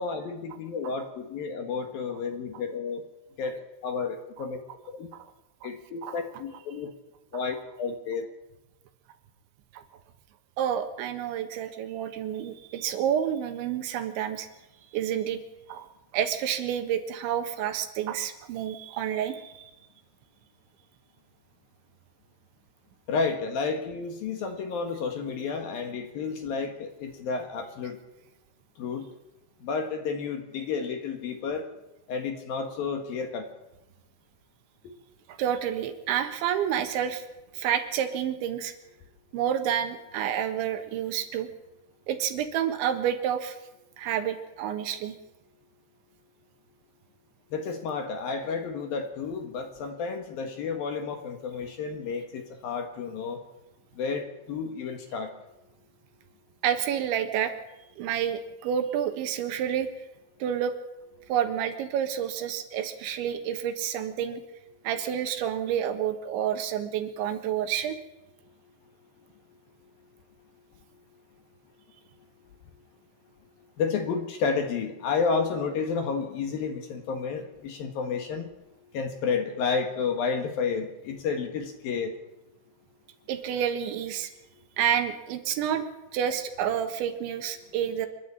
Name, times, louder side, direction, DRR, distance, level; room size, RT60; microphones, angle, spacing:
voice 1, 0.0-3.0 3.4-4.6 4.9-5.1 5.6-6.9 7.3-8.3 23.1-28.0 28.8-29.1 29.6-31.7 32.1-33.5 47.5-53.4 54.0-55.3 73.8-78.5 78.9-82.1, left 5 dB, 60° left, 5 dB, 2.9 m, -31 dB
voice 2, 10.6-14.5 14.9-15.4 15.7-15.9 16.1-19.7 35.4-37.2 37.5-38.7 39.3-41.5 42.1-43.6 44.0-45.2 56.6-57.5 58.0-59.9 60.4-60.7 61.3-64.4 64.9-68.0 83.3-84.3 84.8-85.9 86.1-88.1, right 9 dB, 75° right, 8 dB, 3.7 m, -29 dB
27.5 x 11.5 x 8.6 m, 0.96 s
omnidirectional pair, 5.5 m